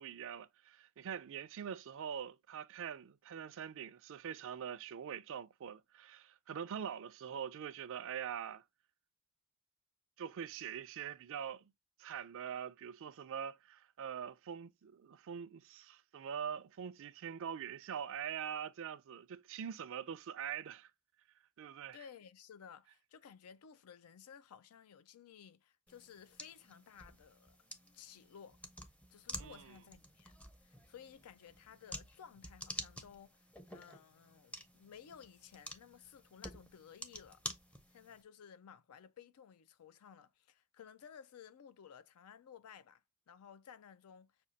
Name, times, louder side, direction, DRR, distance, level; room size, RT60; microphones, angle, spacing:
voice 1, 0.0-8.6 10.2-11.7 12.0-20.9 21.6-22.0 29.4-29.7, right 8 dB, 60° right, 0.4 m, -44 dB
voice 2, 21.9-27.6 27.9-28.6 29.1-30.3 30.6-37.4 37.9-44.3, left 7 dB, 85° left, 0.4 m, -56 dB
sound 1, 25.9-38.2, equal, 5° left, 0.5 m, -50 dB
6.1 x 2.3 x 2.7 m
head